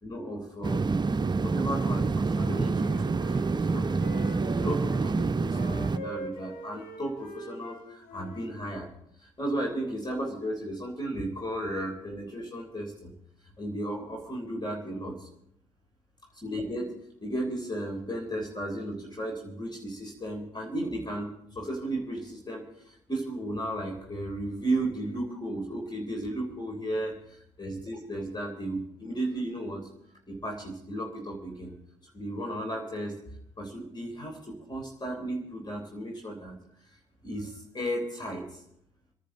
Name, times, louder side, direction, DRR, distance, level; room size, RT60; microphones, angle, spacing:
voice 1, 0.0-1.0 1.4-4.2 4.5-8.9 9.2-13.1 13.6-15.3 16.4-27.1 27.6-29.9 30.3-31.7 32.1-33.2 33.6-36.5 37.2-38.4, right 1 dB, 30° left, 1 dB, 3.4 m, -34 dB
sound 1, 0.6-6.0, right 4 dB, 30° right, 0.6 m, -27 dB
Wind instrument woodwind instrument, 2.3-5.0 5.5-8.9, equal, 75° left, 1.9 m, -44 dB
26.0 x 10.5 x 3.9 m, 0.74 s
hypercardioid pair, 45°, 15 cm